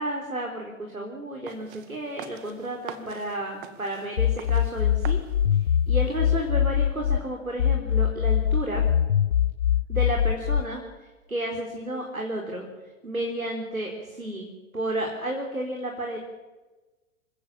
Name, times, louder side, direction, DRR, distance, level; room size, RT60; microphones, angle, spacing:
voice 1, 0.0-5.2 5.9-8.8 9.9-12.7 13.0-16.2, right 1 dB, 85° right, 2 dB, 4.2 m, -32 dB
sound 1, 1.5-6.5, right 9 dB, 40° right, 2.2 m, -45 dB
sound 2, 4.2-7.2 7.6-10.6, left 9 dB, 70° left, 0.8 m, -23 dB
28.0 x 16.0 x 7.4 m, 1.2 s
figure-of-eight pair, 110°, 41 cm